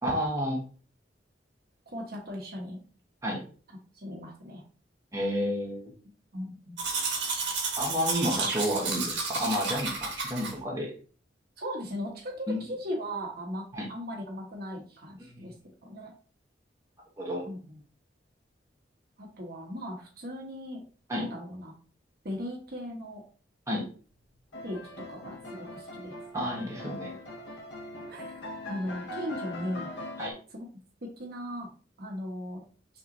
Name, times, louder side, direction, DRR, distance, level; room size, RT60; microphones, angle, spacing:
voice 1, 0.0-0.6 3.2-3.4 5.1-5.9 7.8-10.9 12.5-12.6 13.7-13.9 15.3-15.5 17.2-17.4 21.1-21.2 23.7-23.8 26.3-27.1 30.2-30.3, equal, 15° right, -3 dB, 1.2 m, -30 dB
voice 2, 1.9-2.8 3.9-4.6 6.3-6.8 11.6-15.5 15.8-16.1 17.4-17.8 19.2-20.8 21.1-21.7 22.2-23.2 24.6-24.8 25.1-26.1 26.4-26.7 28.1-28.4 28.7-29.9 30.5-30.7 31.0-31.7 32.0-32.6, equal, 55° right, -1 dB, 1.2 m, -38 dB
Domestic sounds home sounds, 6.8-10.5, right 4 dB, 70° right, 1.5 m, -31 dB
sound 1, 24.5-30.3, left 1 dB, 70° left, 1.0 m, -41 dB
5.8 x 3.0 x 2.6 m, 0.40 s
head